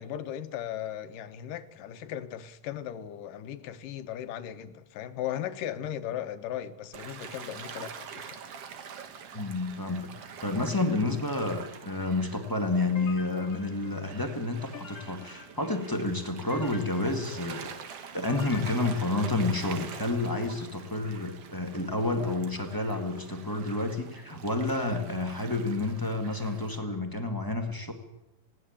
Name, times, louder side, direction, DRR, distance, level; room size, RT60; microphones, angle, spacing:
voice 1, 0.0-8.4, left 11 dB, 80° left, 2.7 m, -37 dB
Gull seagull / Waves surf, 6.9-26.8, right 7 dB, 55° right, 2.1 m, -46 dB
voice 2, 9.3-10.1 10.4-17.7 18.1-27.9, left 2 dB, 10° left, 1.1 m, -30 dB
sound 1, 12.9-19.9, left 6 dB, 30° left, 1.9 m, -49 dB
20.0 x 17.5 x 8.8 m
omnidirectional pair, 3.8 m